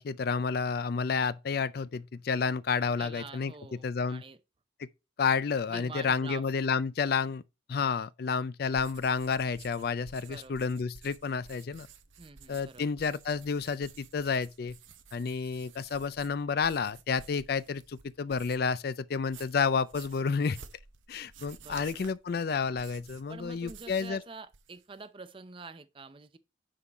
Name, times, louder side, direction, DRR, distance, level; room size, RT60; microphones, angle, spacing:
voice 1, 0.0-3.5 3.8-4.2 4.8-4.9 5.2-7.4 7.7-11.9 12.5-14.8 15.1-20.6 21.1-24.2, left 5 dB, 50° left, 0.4 m, -30 dB
voice 2, 3.0-4.4 5.7-6.5 10.3-10.6 12.2-12.8 21.6-21.9 23.3-26.4, right 4 dB, 25° right, 0.5 m, -46 dB
sound 1, 8.7-18.8 19.1-24.2 24.4-25.0, right 6 dB, 85° right, 0.9 m, -53 dB
9.8 x 3.7 x 4.2 m
head